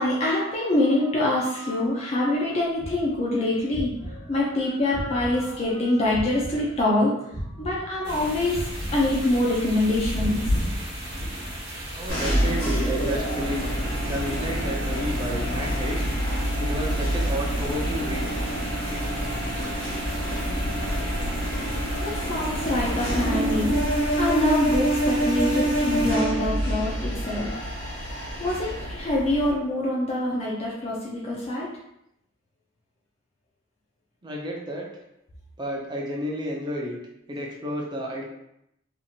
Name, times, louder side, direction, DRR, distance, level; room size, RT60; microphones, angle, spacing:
voice 1, 0.0-7.1 7.6-8.6 8.9-10.4 22.0-27.5 28.4-31.7, left 1 dB, 30° left, -5 dB, 0.5 m, -25 dB
sound 1, 2.8-5.7 6.1-9.4, equal, 80° right, 0.8 m, -37 dB
sound 2, 8.0-26.1, equal, 55° right, 1.1 m, -33 dB
voice 2, 11.9-13.6 14.1-16.0 16.6-18.3 34.2-34.9 35.6-37.0 37.3-38.2, equal, 20° right, -2 dB, 0.5 m, -31 dB
sound 3, 12.1-29.5, right 1 dB, 75° left, 1.3 m, -27 dB
2.9 x 2.4 x 2.7 m, 0.80 s
head